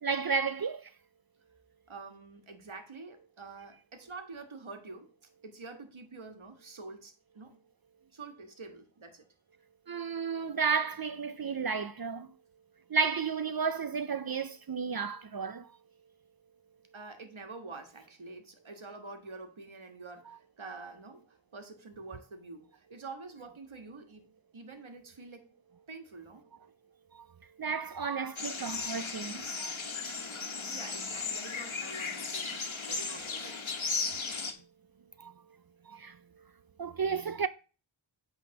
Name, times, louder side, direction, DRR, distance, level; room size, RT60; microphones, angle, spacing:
voice 1, 0.0-0.9 9.9-12.3 12.9-15.7 27.1-27.3 27.6-29.7 35.2-35.3 35.9-36.2 36.8-37.5, right 5 dB, 50° right, 0.5 m, -32 dB
voice 2, 1.9-5.1 5.4-7.6 8.1-9.3 16.9-21.2 21.5-24.3 24.5-25.5 25.9-26.4 29.0-29.1 30.7-33.7, right 3 dB, 70° right, 1.5 m, -47 dB
sound 1, 28.4-34.5, left 4 dB, 70° left, 1.3 m, -36 dB
8.5 x 3.6 x 6.3 m
wide cardioid pair, 45°, 49 cm